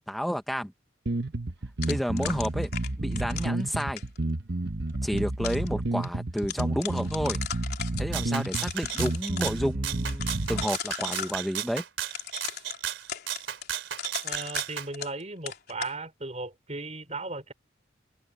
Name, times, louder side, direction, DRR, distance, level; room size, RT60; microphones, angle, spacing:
voice 1, 0.1-0.7 1.8-2.7 3.0-4.0 5.0-7.4 8.0-11.8, equal, ahead, 1.1 m, -30 dB
sound 1, 1.1-10.7, right 2 dB, 60° right, 1.1 m, -30 dB
sound 2, 1.8-4.2 4.9-5.7 6.0-6.1 6.4-8.0 8.4-9.5 10.1-11.4 12.1-15.2 15.5-15.9, left 8 dB, 55° left, 4.3 m, -37 dB
Rattle (instrument), 8.1-14.9, right 10 dB, 80° right, 3.2 m, -34 dB
voice 2, 14.2-17.5, right 3 dB, 35° right, 3.5 m, -36 dB
head